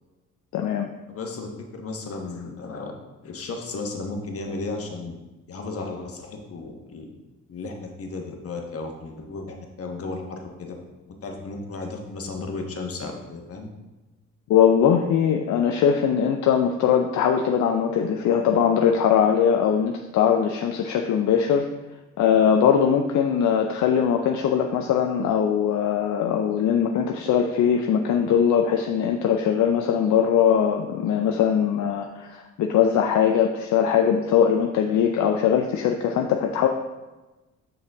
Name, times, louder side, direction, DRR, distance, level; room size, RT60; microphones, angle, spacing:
voice 1, 0.5-0.9 14.5-21.7 22.2-36.7, left 8 dB, 70° left, 4 dB, 0.6 m, -21 dB
voice 2, 1.1-2.9 3.2-5.1 5.5-7.1 7.5-10.7 11.2-13.7, left 3 dB, 50° left, 2 dB, 1.3 m, -34 dB
6.5 x 5.7 x 3.5 m, 1.1 s
cardioid pair, 90°, 30 cm